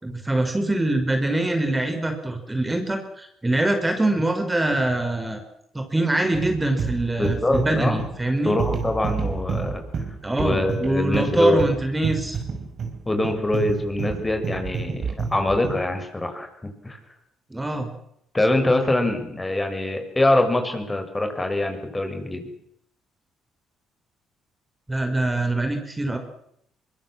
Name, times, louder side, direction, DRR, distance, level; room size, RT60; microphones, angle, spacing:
voice 1, 0.0-5.4 5.7-8.5 10.2-12.4 17.5-17.9 24.9-26.2, right 2 dB, 15° right, 6 dB, 5.1 m, -24 dB
sound 1, 6.3-15.9, right 5 dB, 55° right, 6.0 m, -30 dB
voice 2, 7.2-8.0 8.4-9.8 10.4-11.6 13.1-16.5 16.8-17.0 18.3-22.4, left 2 dB, 20° left, 6 dB, 6.5 m, -23 dB
24.0 x 21.5 x 7.6 m, 0.73 s
hypercardioid pair, 55°, 0 cm